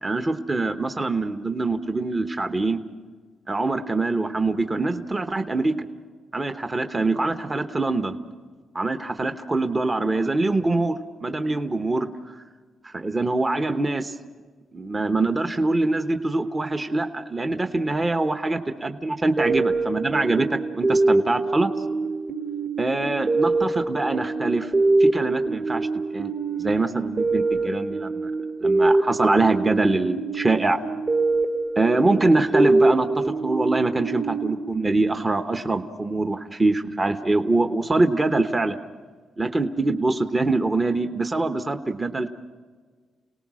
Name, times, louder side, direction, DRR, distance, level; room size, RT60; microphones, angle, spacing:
voice 1, 0.0-2.8 3.5-5.8 6.3-8.2 8.7-12.3 12.8-14.1 14.7-21.7 22.8-24.7 25.0-25.9 26.1-26.3 26.6-28.3 28.6-30.8 31.8-38.8 39.4-42.3, right 2 dB, 25° right, 6 dB, 1.1 m, -24 dB
sound 1, 19.4-35.7, right 3 dB, 40° right, 1.7 m, -24 dB
29.5 x 18.5 x 6.3 m, 1.5 s
cardioid pair, 85°, 0 cm